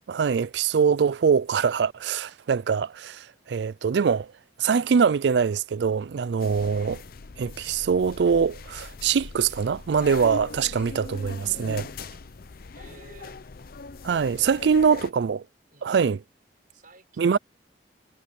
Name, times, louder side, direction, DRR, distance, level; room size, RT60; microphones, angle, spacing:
voice 1, 0.1-4.3 4.6-7.0 7.4-11.9 14.0-15.4 15.8-16.2 17.2-17.4, right 6 dB, 75° right, 0.4 m, -23 dB
sound 1, 6.4-15.1, left 3 dB, 55° left, 0.6 m, -40 dB
voice 2, 12.7-13.4 14.1-15.1 15.7-16.1 16.7-17.4, right 2 dB, 50° right, 6.0 m, -52 dB
head